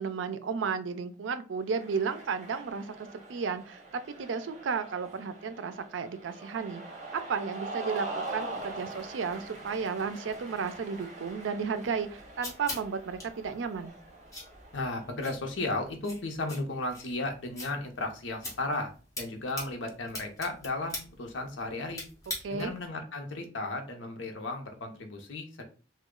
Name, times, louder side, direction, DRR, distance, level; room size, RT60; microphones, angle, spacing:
voice 1, 0.0-3.8 4.1-6.8 7.3-13.9 22.4-22.7, right 5 dB, 90° right, 11 dB, 0.4 m, -33 dB
Cheering, 1.7-15.1, right 2 dB, 40° right, 1.1 m, -43 dB
sound 1, 11.8-22.9, left 2 dB, 20° left, 1.2 m, -44 dB
voice 2, 14.7-22.0 22.5-25.6, left 2 dB, 90° left, 5 dB, 0.7 m, -35 dB
3.0 x 2.2 x 3.6 m, 0.36 s
head